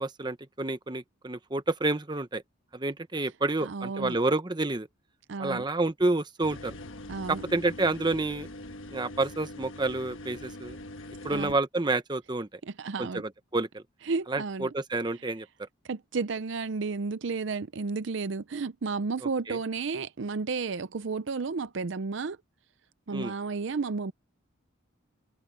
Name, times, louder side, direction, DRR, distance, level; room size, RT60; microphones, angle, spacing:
voice 1, 0.0-2.4 2.7-4.9 5.4-6.8 7.3-8.5 8.9-10.8 11.2-12.5 13.0-13.8 14.3-15.7 19.2-19.6 23.1-23.3, right 2 dB, 20° right, 0.9 m, -29 dB
voice 2, 3.6-4.2 5.3-5.6 7.1-7.4 11.3-11.6 12.7-13.2 14.1-14.7 15.9-22.4 23.1-24.1, right 4 dB, 60° right, 0.5 m, -32 dB
sound 1, 6.4-11.5, left 1 dB, 75° left, 1.4 m, -43 dB
head